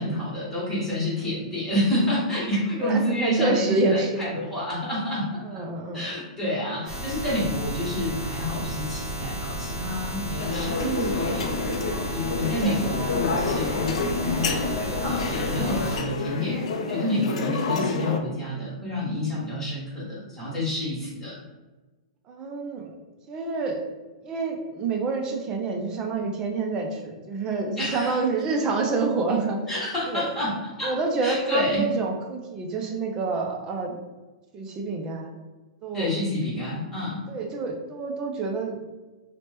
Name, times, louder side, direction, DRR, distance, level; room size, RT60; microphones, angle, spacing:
voice 1, 0.0-5.6 5.9-11.5 12.1-21.4 27.8-28.2 29.7-30.9 31.2-31.9 35.9-37.2, left 1 dB, 10° left, -9 dB, 1.2 m, -28 dB
voice 2, 2.8-4.3 5.4-6.0 10.6-11.1 13.7-13.8 17.0-17.3 20.1-20.3 22.3-22.9 23.3-23.8 24.2-29.6 30.1-30.3 30.8-33.9 34.5-35.3 35.8-36.2 37.3-38.9, right 4 dB, 20° right, 2 dB, 0.4 m, -28 dB
sound 1, 6.9-16.0, right 1 dB, 40° right, 1.1 m, -33 dB
sound 2, 10.4-18.2, left 4 dB, 70° left, 0.4 m, -28 dB
2.8 x 2.1 x 3.3 m, 1.2 s
hypercardioid pair, 160°, 4 cm